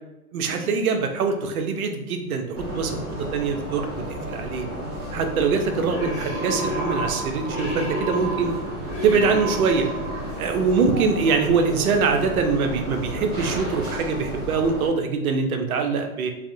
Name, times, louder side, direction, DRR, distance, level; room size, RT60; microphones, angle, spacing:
voice 1, 0.3-4.7 5.1-8.5 9.0-9.9 10.4-16.3, right 5 dB, 70° right, 5 dB, 0.5 m, -23 dB
sound 1, 2.5-14.9, equal, 10° right, 0.4 m, -31 dB
2.4 x 2.0 x 2.5 m, 0.99 s
hypercardioid pair, 120°, 45 cm